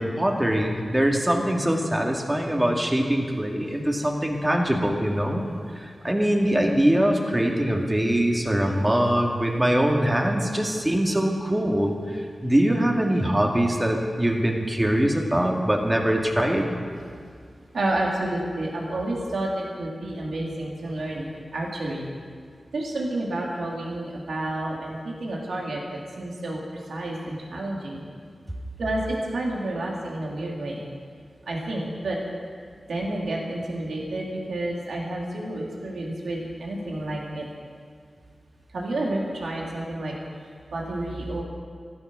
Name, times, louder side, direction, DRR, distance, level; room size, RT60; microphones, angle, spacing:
voice 1, 0.0-5.5 5.7-11.9 12.4-16.8, right 1 dB, 15° right, 1 dB, 2.2 m, -23 dB
voice 2, 17.7-21.3 21.5-22.0 22.7-26.6 26.9-28.0 28.8-30.8 31.5-32.2 32.9-37.5 38.7-40.1 40.7-41.4, right 1 dB, 85° right, -2 dB, 2.9 m, -30 dB
14.5 x 13.5 x 6.2 m, 2.1 s
wide cardioid pair, 65°, 0 cm